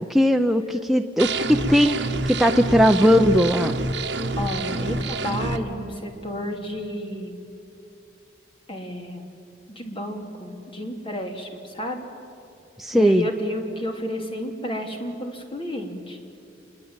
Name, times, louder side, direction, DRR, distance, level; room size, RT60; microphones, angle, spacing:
voice 1, 0.0-2.0 2.3-3.8 12.8-13.3, equal, ahead, 5 dB, 0.6 m, -18 dB
sound 1, 1.2-5.6, right 2 dB, 65° right, 1.4 m, -27 dB
voice 2, 4.4-7.4 8.7-9.3 9.7-12.1 12.9-16.2, equal, 30° left, 3 dB, 3.0 m, -31 dB
27.0 x 22.5 x 8.9 m, 2.7 s
head